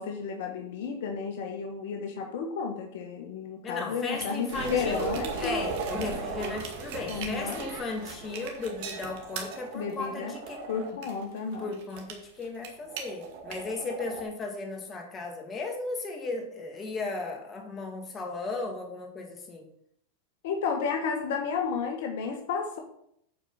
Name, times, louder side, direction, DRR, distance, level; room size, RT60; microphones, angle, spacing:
voice 1, 0.0-5.6 7.1-7.6 9.7-10.3 10.7-11.7 20.4-22.8, left 6 dB, 70° left, 3 dB, 1.3 m, -32 dB
voice 2, 3.6-5.1 5.3-10.7 11.6-19.7, left 3 dB, 25° left, 2 dB, 2.3 m, -35 dB
sound 1, 4.1-14.2, right 4 dB, 60° right, 2.0 m, -37 dB
8.5 x 4.7 x 5.7 m, 0.72 s
hypercardioid pair, 115°, 0 cm